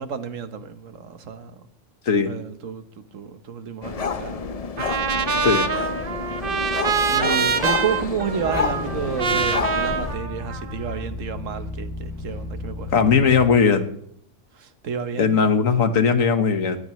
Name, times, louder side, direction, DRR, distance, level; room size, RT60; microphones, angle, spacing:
voice 1, 0.0-1.6 2.3-4.6 4.9-12.9 14.5-15.5, right 6 dB, 70° right, 1.5 m, -32 dB
sound 1, 3.8-10.2, left 5 dB, 40° left, 0.6 m, -29 dB
Trumpet, 4.8-11.0, right 5 dB, 45° right, 1.0 m, -25 dB
sound 2, 8.4-13.5, left 2 dB, 20° left, 7.7 m, -34 dB
voice 2, 12.9-13.9 15.2-16.8, left 5 dB, 80° left, 1.7 m, -18 dB
19.5 x 16.5 x 3.2 m
omnidirectional pair, 1.4 m